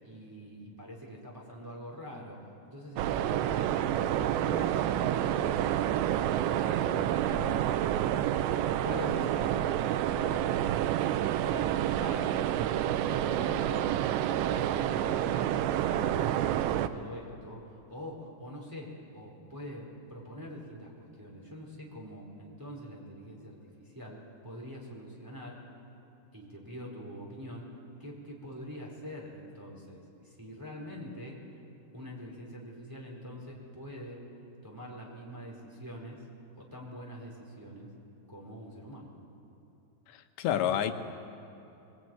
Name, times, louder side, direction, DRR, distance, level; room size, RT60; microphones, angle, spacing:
voice 1, 0.0-2.4 2.7-6.1 6.5-7.7 8.8-10.5 11.2-25.6 26.3-27.6 28.0-31.4 31.9-34.2 34.6-36.2 36.6-37.9 38.3-39.1, equal, 5° right, -2 dB, 3.9 m, -44 dB
sound 1, 3.0-16.9, right 11 dB, 85° right, 3.0 m, -29 dB
voice 2, 40.1-40.9, left 10 dB, 85° left, 7 dB, 3.3 m, -29 dB
22.0 x 21.5 x 9.3 m, 2.9 s
omnidirectional pair, 5.0 m